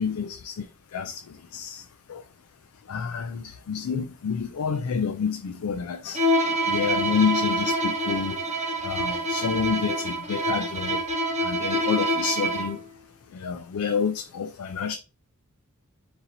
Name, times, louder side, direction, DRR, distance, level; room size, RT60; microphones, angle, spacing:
voice 1, 0.0-2.2 2.9-8.5 8.8-11.1 11.4-12.8 13.3-15.0, left 6 dB, 85° left, 0.4 m, -29 dB
Bowed string instrument, 6.1-12.8, right 1 dB, 35° right, 0.9 m, -26 dB
3.8 x 2.8 x 4.2 m
head